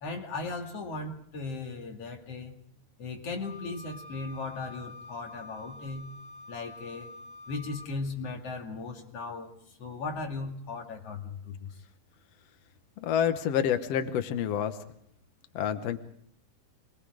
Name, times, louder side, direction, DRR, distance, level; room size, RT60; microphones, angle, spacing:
voice 1, 0.0-2.6 3.0-6.1 6.5-7.1 7.5-9.5 9.8-11.7, left 3 dB, 45° left, 1 dB, 3.0 m, -37 dB
Wind instrument woodwind instrument, 3.4-7.9, left 2 dB, 45° right, 1.5 m, -47 dB
voice 2, 13.0-14.8 15.5-16.0, left 9 dB, 85° left, 8 dB, 1.4 m, -28 dB
28.0 x 21.5 x 4.9 m, 0.67 s
omnidirectional pair, 4.5 m